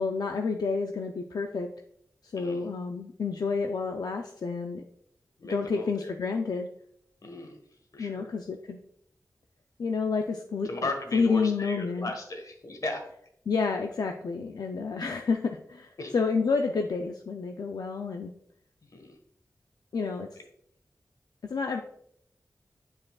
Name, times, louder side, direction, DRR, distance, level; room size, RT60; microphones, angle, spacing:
voice 1, 0.0-1.7 2.2-4.8 5.5-6.7 8.0-8.8 9.8-10.7 11.1-12.1 13.5-18.3 19.9-20.3 21.5-21.8, left 4 dB, 85° left, 4 dB, 0.4 m, -29 dB
voice 2, 2.4-2.7 5.4-6.1 7.2-7.6 7.9-8.3 10.6-13.0 16.0-16.1 18.9-19.1, left 2 dB, 65° left, 4 dB, 1.3 m, -36 dB
8.5 x 4.9 x 2.3 m, 0.69 s
wide cardioid pair, 60°, 7 cm